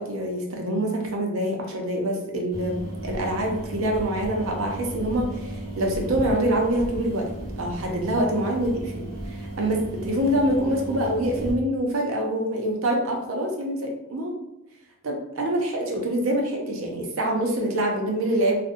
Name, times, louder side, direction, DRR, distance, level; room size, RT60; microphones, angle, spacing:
voice 1, 0.0-7.3 7.6-14.3 15.0-18.6, right 1 dB, 90° right, 1 dB, 0.6 m, -25 dB
sound 1, 2.5-11.5, right 1 dB, 50° right, 0.7 m, -35 dB
2.5 x 2.1 x 2.5 m, 0.89 s
head